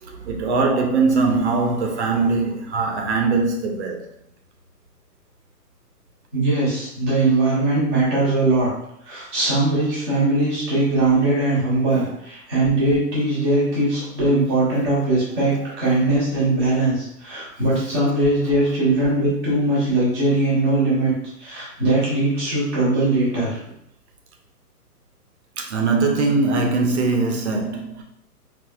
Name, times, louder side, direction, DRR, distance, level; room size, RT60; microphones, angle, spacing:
voice 1, 0.0-4.0 11.9-12.1 15.3-16.1 17.7-18.0 22.9-23.0 25.6-28.0, right 3 dB, 45° right, 0.6 m, -22 dB
voice 2, 6.3-8.7 9.0-15.5 15.8-21.1 21.4-23.6, right 2 dB, 5° left, 0.4 m, -20 dB
4.1 x 2.0 x 2.3 m
hypercardioid pair, 135°, 47 cm